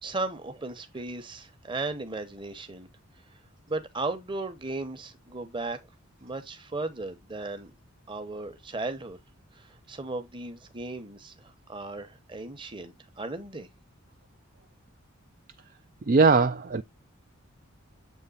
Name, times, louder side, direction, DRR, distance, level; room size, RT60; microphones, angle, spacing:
voice 1, 0.0-2.9 3.7-5.8 6.2-7.7 8.1-9.2 9.5-13.7, right 2 dB, 20° right, 1.0 m, -36 dB
voice 2, 16.1-16.8, right 4 dB, 40° right, 0.4 m, -20 dB
8.2 x 3.3 x 4.0 m
head